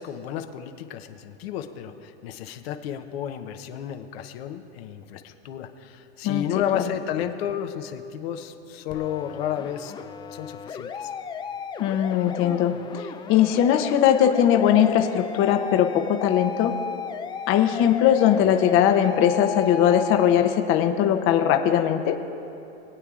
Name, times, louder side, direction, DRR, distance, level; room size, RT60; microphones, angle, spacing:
voice 1, 0.0-9.9 10.3-11.1, left 9 dB, 70° left, 6 dB, 0.8 m, -32 dB
sound 1, 8.9-20.3, left 6 dB, 15° left, 0.4 m, -35 dB
voice 2, 11.8-16.7 17.5-22.2, left 10 dB, 40° left, 6 dB, 0.7 m, -20 dB
23.5 x 8.2 x 2.4 m, 2.9 s
hypercardioid pair, 115°, 32 cm